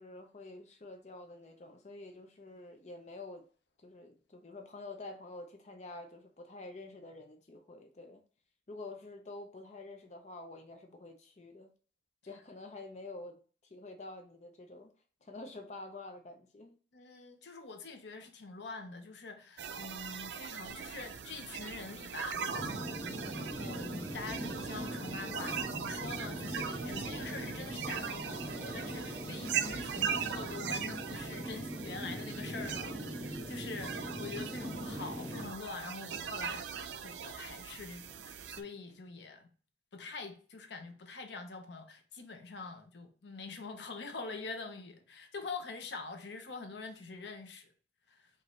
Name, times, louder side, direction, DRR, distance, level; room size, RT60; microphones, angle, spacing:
voice 1, 0.0-3.4 3.8-8.2 8.7-11.7 12.2-13.4 13.7-14.9 15.2-16.8, left 2 dB, 40° left, 0.5 m, -48 dB
voice 2, 16.9-39.5 39.9-47.7 48.1-48.3, left 4 dB, 80° left, 0.7 m, -45 dB
sound 1, 19.6-38.6, right 7 dB, 85° right, 0.4 m, -40 dB
sound 2, 22.5-35.5, equal, 50° right, 1.6 m, -41 dB
5.4 x 2.6 x 3.1 m
head